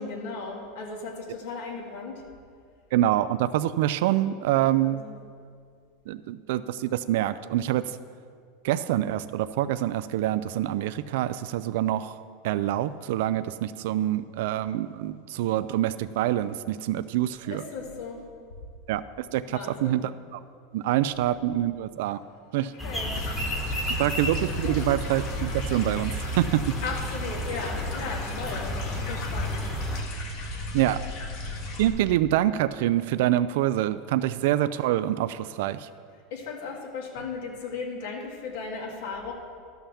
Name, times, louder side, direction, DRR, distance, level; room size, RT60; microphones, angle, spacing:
voice 1, 0.0-2.2 4.8-5.2 17.4-18.2 19.5-20.0 22.6-23.3 23.7-24.1 24.6-24.9 26.8-29.7 36.3-39.3, left 4 dB, 75° left, -1 dB, 2.0 m, -36 dB
voice 2, 2.9-5.0 6.1-7.9 8.6-12.2 12.4-17.6 18.9-19.0 19.3-20.0 20.3-20.4 20.7-22.2 22.5-22.7 24.0-26.6 30.7-31.0 31.8-35.9, right 13 dB, 65° right, 13 dB, 0.3 m, -26 dB
sound 1, 22.8-30.0, right 1 dB, 5° left, 1.3 m, -33 dB
sound 2, 23.1-31.9, left 3 dB, 45° left, 1.8 m, -35 dB
12.5 x 5.7 x 7.0 m, 2.2 s
supercardioid pair, 165°, 0 cm